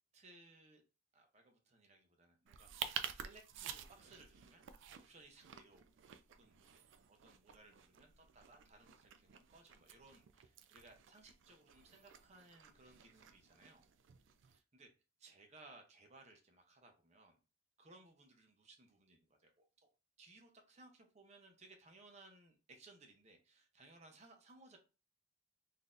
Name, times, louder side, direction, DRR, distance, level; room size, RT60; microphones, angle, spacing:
voice 1, 0.1-0.8 1.1-4.6 5.0-5.9 6.4-6.8 7.1-13.8 14.5-14.9 15.2-17.4 17.8-19.9 20.2-24.8, right 2 dB, 35° right, 3 dB, 0.7 m, -62 dB
sound 1, 2.5-14.6, right 8 dB, 70° right, 0.3 m, -51 dB
3.8 x 2.6 x 2.5 m, 0.32 s
head